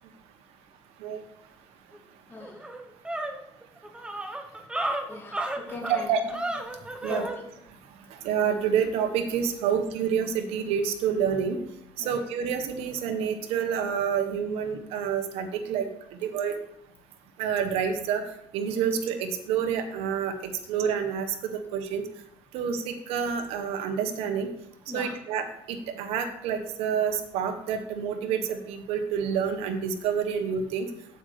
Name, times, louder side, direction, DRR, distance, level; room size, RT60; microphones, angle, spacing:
sound 1, 1.9-2.0 2.4-7.4, right 1 dB, 10° right, 1.3 m, -33 dB
voice 1, 5.1-6.3 6.7-6.8 7.1-7.3 12.0-12.1 24.9-25.1, left 2 dB, 20° left, -1 dB, 2.5 m, -38 dB
voice 2, 5.9-6.2 7.0-7.2 8.2-11.6 12.0-15.9 16.2-16.5 17.4-18.2 18.5-21.3 21.5-22.0 22.5-24.5 24.9-30.8, right 7 dB, 80° right, 6 dB, 1.5 m, -28 dB
8.7 x 7.9 x 5.1 m, 0.79 s
cardioid pair, 105°, 10 cm